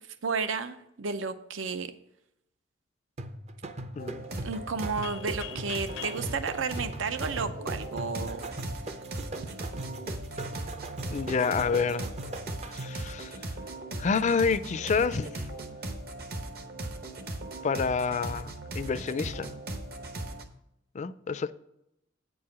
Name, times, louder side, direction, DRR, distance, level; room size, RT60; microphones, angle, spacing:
voice 1, 0.2-1.9 4.4-8.4, right 5 dB, 85° right, 0.6 m, -32 dB
sound 1, 3.2-13.1, right 2 dB, 35° right, 0.5 m, -40 dB
sound 2, 4.0-20.4, right 1 dB, 55° right, 1.0 m, -38 dB
sound 3, 5.0-7.8, left 10 dB, 85° left, 0.7 m, -44 dB
voice 2, 11.1-12.1 12.7-13.4 14.0-15.3 17.6-19.6 20.9-21.5, left 5 dB, 40° left, 0.4 m, -28 dB
8.6 x 4.7 x 7.3 m
head